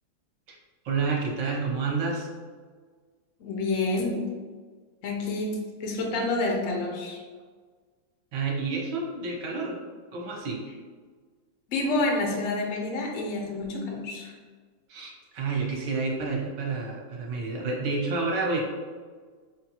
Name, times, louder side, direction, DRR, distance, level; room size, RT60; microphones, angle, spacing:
voice 1, 0.8-2.3 8.3-9.8 10.1-10.6 14.9-18.6, right 4 dB, 65° right, -2 dB, 1.3 m, -29 dB
voice 2, 3.4-4.2 5.0-7.2 11.7-14.3, left 2 dB, 85° left, 0 dB, 0.6 m, -28 dB
5.4 x 2.3 x 2.8 m, 1.5 s
omnidirectional pair, 2.2 m